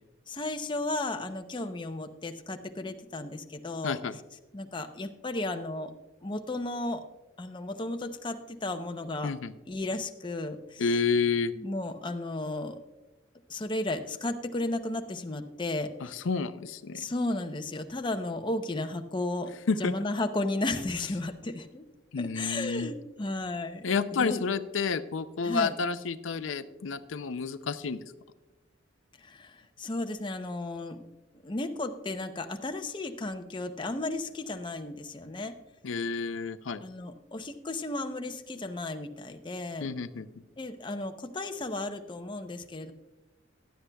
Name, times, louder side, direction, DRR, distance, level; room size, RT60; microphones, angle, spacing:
voice 1, 0.3-4.0 4.5-5.9 6.2-7.0 7.4-9.3 9.7-10.8 11.6-12.8 13.5-15.9 16.9-19.5 19.8-21.9 22.2-24.4 25.4-25.7 29.2-31.1 31.4-35.5 36.8-39.9 40.6-42.9, left 2 dB, 25° left, 6 dB, 0.6 m, -34 dB
voice 2, 3.8-4.2 9.2-9.5 10.8-11.5 16.0-17.0 19.7-19.9 22.1-22.9 23.8-28.1 35.8-36.8 39.8-40.3, left 5 dB, 80° left, 12 dB, 0.5 m, -30 dB
16.0 x 11.5 x 2.3 m, 1.0 s
head